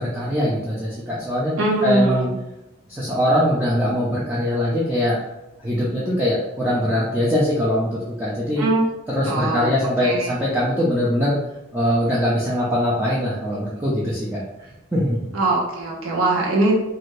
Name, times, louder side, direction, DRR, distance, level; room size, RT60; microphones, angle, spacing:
voice 1, 0.0-1.5 1.8-2.3 2.9-5.2 5.6-8.7 9.1-11.4 11.7-15.3, equal, 10° right, -8 dB, 0.4 m, -22 dB
voice 2, 1.6-2.4 8.6-8.8 9.2-9.7 10.0-10.3 15.3-16.8, right 2 dB, 80° right, -3 dB, 0.8 m, -21 dB
2.6 x 2.5 x 3.1 m, 0.93 s
head